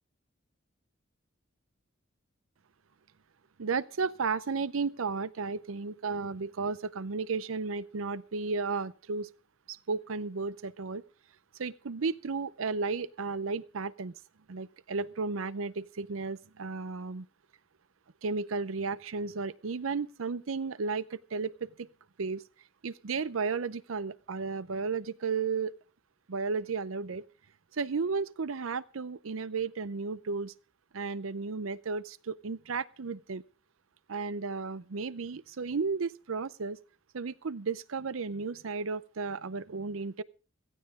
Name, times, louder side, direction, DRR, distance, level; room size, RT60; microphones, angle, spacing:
voice 1, 3.6-9.3 9.7-11.0 11.6-14.2 14.5-17.3 18.2-21.9 22.2-22.4 22.8-25.7 26.3-27.3 27.7-30.5 30.9-33.4 34.1-36.8 37.1-40.2, right 4 dB, 80° right, 0.6 m, -33 dB
16.5 x 14.5 x 3.7 m
head